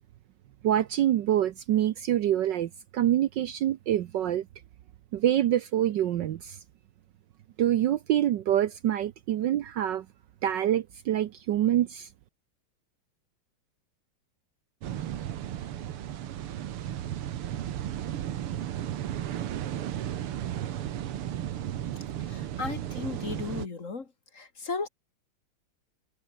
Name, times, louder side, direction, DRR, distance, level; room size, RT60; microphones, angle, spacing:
voice 1, 0.6-4.4 5.1-6.6 7.6-10.0 10.4-12.1, right 11 dB, 65° right, 1.3 m, -26 dB
sound 1, 14.8-23.7, right 11 dB, 90° right, 2.1 m, -34 dB
voice 2, 22.3-24.1 24.3-24.9, left 4 dB, 35° left, 2.2 m, -35 dB
omnidirectional pair, 2.4 m